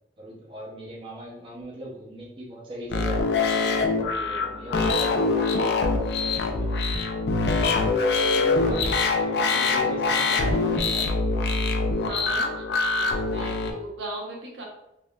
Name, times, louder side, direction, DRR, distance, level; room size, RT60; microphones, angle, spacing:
voice 1, 0.2-3.3 4.1-6.8 8.3-11.1, equal, 30° right, -4 dB, 0.6 m, -39 dB
sound 1, 2.9-13.7, left 3 dB, 70° left, 0.4 m, -24 dB
voice 2, 12.0-12.6 12.9-14.6, right 1 dB, 90° right, -1 dB, 0.8 m, -37 dB
3.5 x 2.3 x 2.2 m, 0.84 s
head